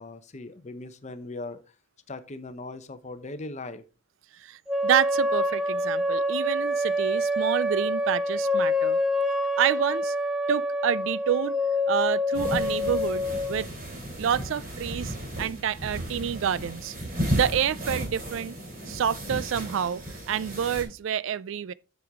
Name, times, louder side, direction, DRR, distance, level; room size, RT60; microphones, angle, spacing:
voice 1, 0.0-1.6 2.1-3.8, left 2 dB, 35° left, 0.7 m, -39 dB
voice 2, 4.4-9.0 9.6-10.1 10.5-11.6 11.9-13.7 14.2-16.9 17.3-18.6 18.9-21.7, right 8 dB, 65° right, 0.3 m, -28 dB
sound 1, 4.7-13.6, left 1 dB, ahead, 0.7 m, -26 dB
sound 2, 12.3-20.8, equal, 45° right, 3.8 m, -34 dB
7.7 x 6.9 x 3.5 m
head